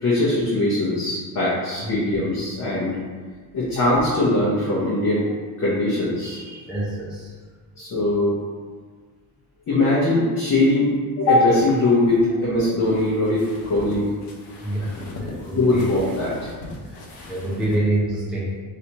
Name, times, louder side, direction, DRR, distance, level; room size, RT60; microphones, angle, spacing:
voice 1, 0.0-2.9 3.5-5.3 5.6-6.6 7.8-8.4 9.7-14.1 15.6-16.5, left 2 dB, 45° left, -8 dB, 1.0 m, -21 dB
voice 2, 6.7-7.3 14.6-15.8 16.9-17.0 17.3-18.6, right 1 dB, ahead, -7 dB, 0.6 m, -26 dB
sound 1, 11.5-17.8, left 2 dB, 60° left, 0.8 m, -40 dB
3.2 x 2.8 x 2.9 m, 1.5 s
cardioid pair, 115°, 39 cm